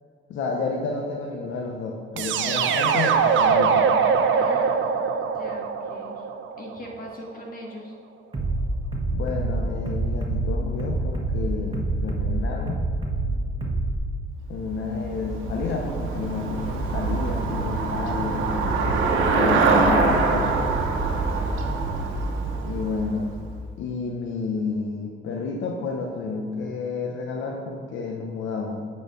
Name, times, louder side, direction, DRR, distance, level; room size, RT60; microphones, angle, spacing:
voice 1, 0.3-4.0 9.1-12.9 14.5-18.7 19.3-20.6 22.6-23.4 23.8-28.9, left 4 dB, 75° left, 0 dB, 0.9 m, -30 dB
sound 1, 2.2-7.1, right 6 dB, 75° right, 0.6 m, -22 dB
voice 2, 4.3-4.9 5.3-6.3 6.6-7.9 13.3-13.4 21.3-21.6, left 1 dB, 45° left, 0 dB, 1.7 m, -40 dB
Bass drum, 8.3-13.9, right 2 dB, 25° right, 1.3 m, -26 dB
Traffic noise roadway noise / Bicycle, 14.5-23.7, right 3 dB, 90° right, 1.0 m, -24 dB
8.6 x 4.3 x 5.3 m, 2.2 s
cardioid pair, 90°, 20 cm